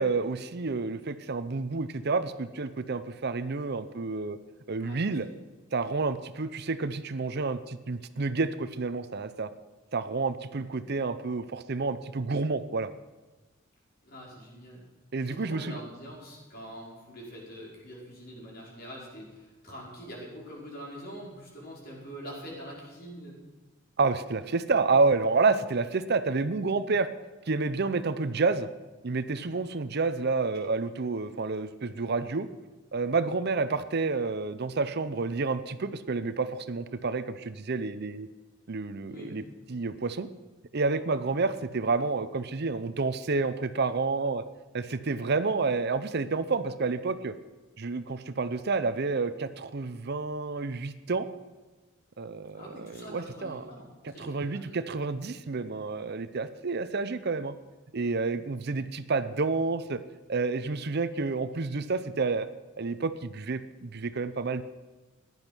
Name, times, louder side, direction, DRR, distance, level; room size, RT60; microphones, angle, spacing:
voice 1, 0.0-4.4 4.7-5.3 5.7-9.5 9.9-12.9 15.1-15.8 24.0-27.1 27.5-28.7 29.0-32.5 32.9-38.3 38.7-40.3 40.7-44.4 44.7-47.3 47.8-51.3 52.2-53.6 54.0-57.5 57.9-60.0 60.3-62.5 62.8-64.6, right 4 dB, 55° right, 12 dB, 0.7 m, -29 dB
voice 2, 4.8-5.2 14.0-14.8 15.2-23.4 39.1-39.5 52.5-54.8, equal, 50° left, -3 dB, 5.1 m, -44 dB
15.0 x 11.0 x 6.2 m, 1.2 s
head